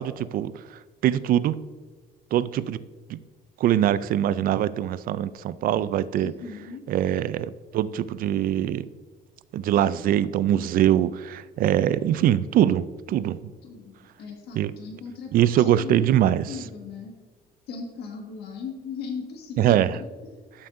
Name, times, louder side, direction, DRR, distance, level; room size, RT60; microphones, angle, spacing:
voice 1, 0.0-1.6 2.3-2.8 3.1-3.2 3.6-6.3 6.9-8.9 9.5-13.4 14.6-14.7 15.3-16.4 19.6-20.0, right 11 dB, 60° right, 17 dB, 0.4 m, -23 dB
voice 2, 6.2-6.8 13.6-16.1 16.5-17.1 17.7-19.8 20.2-20.3, left 5 dB, 75° left, 1 dB, 1.7 m, -37 dB
12.5 x 7.2 x 2.6 m, 1.4 s
cardioid pair, 110°, 17 cm